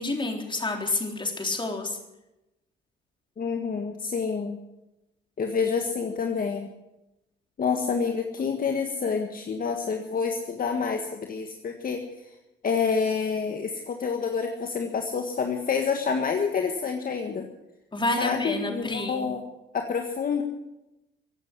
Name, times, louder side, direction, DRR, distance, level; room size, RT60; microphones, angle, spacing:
voice 1, 0.0-1.9 17.9-19.3, left 2 dB, 25° left, 2 dB, 3.7 m, -29 dB
voice 2, 3.4-4.6 5.4-6.7 7.6-12.0 12.6-17.5 18.2-19.4 19.7-20.4, left 5 dB, 45° left, 4 dB, 1.7 m, -28 dB
16.0 x 8.9 x 10.0 m, 0.95 s
cardioid pair, 90°, 20 cm